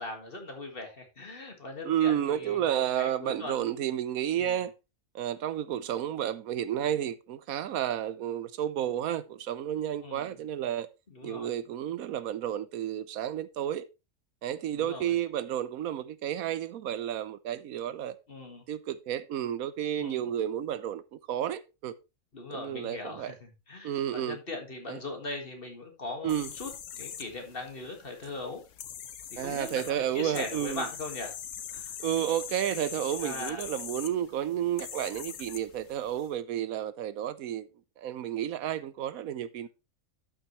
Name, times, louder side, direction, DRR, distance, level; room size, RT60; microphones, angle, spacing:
voice 1, 0.0-3.8 4.3-4.6 6.8-7.0 10.0-10.4 11.1-11.5 14.7-15.2 18.3-18.6 20.0-20.3 22.3-26.7 27.0-28.6 29.3-31.3 31.7-32.0 33.2-33.6, left 2 dB, 40° left, 2.0 m, -40 dB
voice 2, 1.8-4.7 5.1-10.9 11.2-13.8 14.4-18.1 18.7-21.9 22.5-23.3 23.8-24.4 24.9-25.0 26.2-26.5 29.4-30.8 32.0-37.7 38.0-39.7, right 11 dB, 80° right, 1.1 m, -31 dB
sound 1, 26.3-36.3, left 9 dB, 65° left, 1.1 m, -42 dB
12.0 x 5.9 x 3.1 m
omnidirectional pair, 1.5 m